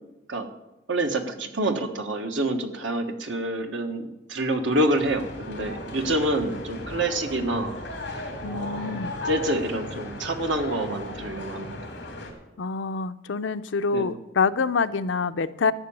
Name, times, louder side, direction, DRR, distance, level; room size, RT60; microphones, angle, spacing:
voice 1, 0.9-7.8 8.5-8.9 9.3-11.8 13.9-14.1, right 1 dB, 90° right, 5 dB, 1.4 m, -27 dB
sound 1, 4.6-12.3, left 1 dB, 60° left, 2.8 m, -36 dB
voice 2, 8.4-9.1 12.6-15.7, left 4 dB, 80° left, 12 dB, 0.6 m, -26 dB
13.5 x 6.0 x 8.9 m, 0.96 s
head